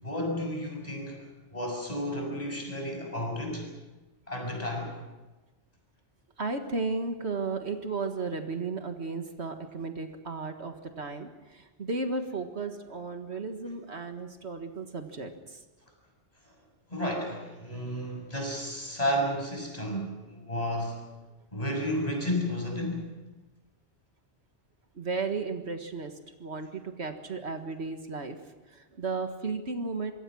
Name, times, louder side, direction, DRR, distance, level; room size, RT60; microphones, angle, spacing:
voice 1, 0.0-3.7 4.3-4.9 16.9-21.0 21.5-23.2, equal, 35° left, 2 dB, 6.8 m, -32 dB
voice 2, 6.4-15.6 25.0-26.2 26.4-28.4 28.7-30.1, right 3 dB, 70° right, 6 dB, 2.0 m, -34 dB
26.0 x 23.0 x 6.3 m, 1.1 s
omnidirectional pair, 1.2 m